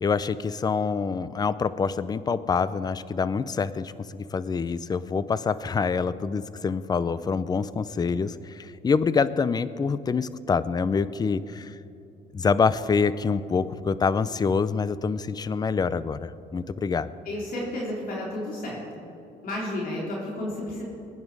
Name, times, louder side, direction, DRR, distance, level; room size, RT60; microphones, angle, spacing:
voice 1, 0.0-11.8 12.3-17.1, left 5 dB, 25° left, 16 dB, 0.5 m, -26 dB
voice 2, 17.3-19.0 19.4-20.8, left 1 dB, 60° left, -4 dB, 3.4 m, -32 dB
21.0 x 9.5 x 4.8 m, 2.7 s
cardioid pair, 110°, 17 cm